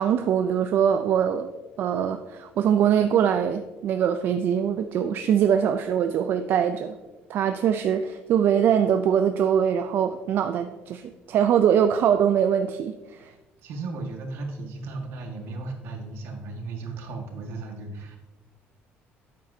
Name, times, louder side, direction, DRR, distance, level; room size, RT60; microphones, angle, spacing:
voice 1, 0.0-1.5 1.8-7.0 7.3-13.3, right 8 dB, 55° right, 8 dB, 0.4 m, -23 dB
voice 2, 13.6-18.2, right 3 dB, 75° right, 2 dB, 1.6 m, -35 dB
9.0 x 7.7 x 2.7 m, 1.1 s
cardioid pair, 140°, 4 cm